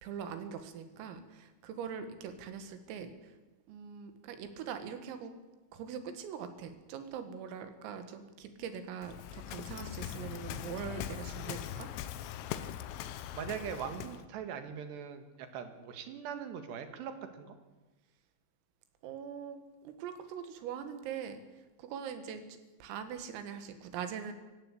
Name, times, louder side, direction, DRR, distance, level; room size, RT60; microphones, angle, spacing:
voice 1, 0.0-3.3 3.7-5.3 5.7-11.9 19.0-21.4 21.8-22.4 22.8-24.3, right 7 dB, 85° right, 9 dB, 4.6 m, -42 dB
Waves surf, 9.0-14.3, left 11 dB, 80° left, 3.6 m, -41 dB
voice 2, 12.9-17.6, right 7 dB, 65° right, 8 dB, 3.6 m, -41 dB
26.5 x 15.0 x 8.5 m, 1.1 s
omnidirectional pair, 5.9 m